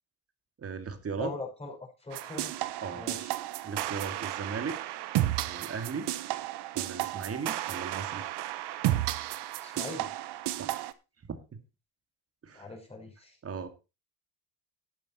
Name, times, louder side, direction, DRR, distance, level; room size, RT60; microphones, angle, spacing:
voice 1, 0.6-1.4 2.8-3.1 3.6-4.8 5.4-6.1 6.7-8.2 10.5-10.8 11.2-11.6 12.4-12.6 13.4-13.7, right 5 dB, 35° right, 9 dB, 2.2 m, -37 dB
voice 2, 1.2-2.5 2.9-3.3 9.6-10.1 12.5-13.4, left 3 dB, 15° left, 1 dB, 5.8 m, -40 dB
sound 1, 2.1-10.9, right 14 dB, 70° right, 1.1 m, -33 dB
12.0 x 9.1 x 4.2 m, 0.29 s
cardioid pair, 105°, 41 cm